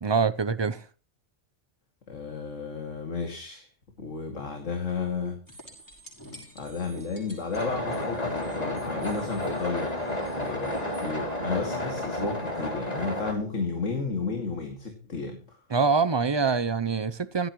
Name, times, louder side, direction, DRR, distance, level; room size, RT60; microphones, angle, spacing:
voice 1, 0.0-0.8 15.7-17.5, right 5 dB, 35° right, 0.4 m, -25 dB
voice 2, 2.1-3.7 4.0-5.4 6.5-9.9 10.3-15.6, left 4 dB, 80° left, 2.7 m, -32 dB
sound 1, 5.5-11.1 14.0-14.1, equal, 15° left, 5.7 m, -48 dB
sound 2, 7.5-13.3, left 1 dB, 30° left, 3.3 m, -31 dB
16.5 x 13.5 x 3.1 m
omnidirectional pair, 1.3 m